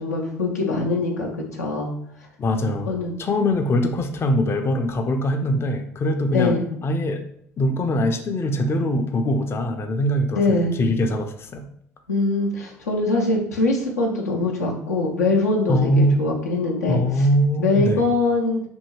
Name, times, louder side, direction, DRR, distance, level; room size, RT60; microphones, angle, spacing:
voice 1, 0.0-1.9 2.9-3.2 6.3-6.6 10.3-10.7 12.1-17.3 17.6-18.6, left 2 dB, 90° left, -1 dB, 0.5 m, -23 dB
voice 2, 2.4-2.9 3.2-6.6 6.8-7.2 7.6-11.7 15.7-16.3 16.9-18.0, left 1 dB, 30° left, 6 dB, 0.4 m, -22 dB
2.7 x 2.6 x 2.9 m, 0.67 s
hypercardioid pair, 65°, 8 cm